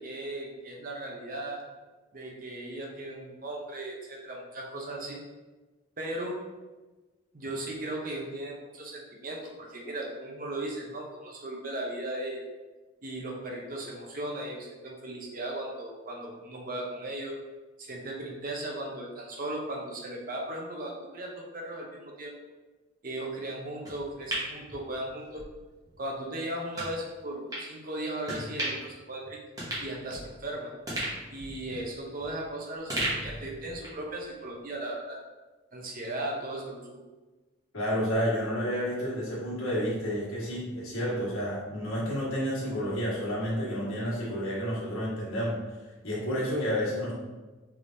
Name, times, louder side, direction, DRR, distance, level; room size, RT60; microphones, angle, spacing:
voice 1, 0.0-1.6 2.1-5.2 6.0-6.3 7.3-12.4 13.0-17.3 17.8-22.3 23.0-25.4 26.0-29.4 29.8-30.7 31.3-35.2 35.7-36.8, right 1 dB, 40° right, -1 dB, 0.7 m, -37 dB
sound 1, 23.9-25.5 25.8-26.0 26.7-26.9 27.5-27.7 28.3-28.9 29.2-29.3 29.6-30.5 30.9-32.5 32.9-34.1 34.4-34.5, right 1 dB, 15° right, 1.1 m, -35 dB
voice 2, 37.7-45.5 46.0-47.1, equal, 85° left, -6 dB, 1.5 m, -30 dB
4.6 x 3.5 x 2.6 m, 1.2 s
head